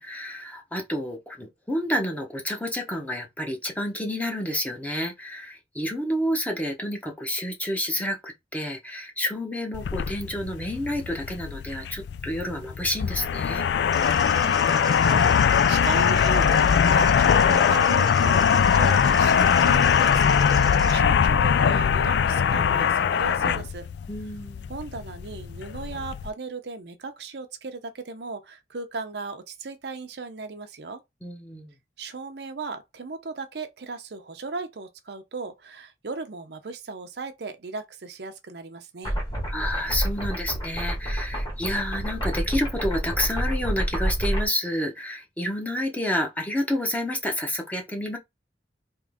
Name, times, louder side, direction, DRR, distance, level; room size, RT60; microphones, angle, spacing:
voice 1, 0.0-13.7 24.1-24.7 31.2-31.7 39.5-48.2, left 1 dB, 10° left, 0.9 m, -29 dB
sound 1, 9.7-26.3, left 7 dB, 70° left, 0.3 m, -21 dB
sound 2, 13.9-20.9, right 4 dB, 20° right, 0.6 m, -39 dB
voice 2, 14.2-23.9 24.7-31.0 32.0-39.2, right 4 dB, 65° right, 0.6 m, -36 dB
sound 3, 39.0-44.5, equal, 25° left, 1.5 m, -28 dB
3.6 x 3.0 x 3.5 m
head